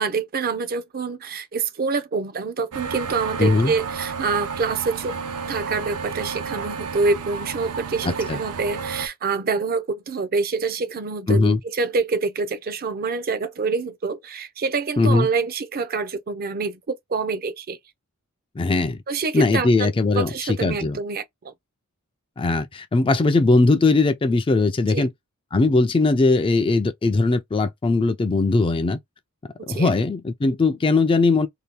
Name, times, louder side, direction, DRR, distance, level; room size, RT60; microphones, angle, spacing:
voice 1, 0.0-5.2 5.5-17.8 19.1-19.9 20.1-21.5 24.9-25.1 29.6-29.9, right 4 dB, 40° right, 0.5 m, -26 dB
sound 1, 2.7-9.1, right 5 dB, 90° right, 0.6 m, -31 dB
voice 2, 3.4-3.7 8.0-8.4 11.3-11.6 15.0-15.3 18.6-19.0 19.3-21.0 22.4-25.1 25.5-29.0 29.6-31.5, left 3 dB, 25° left, 0.3 m, -20 dB
2.8 x 2.3 x 3.3 m
head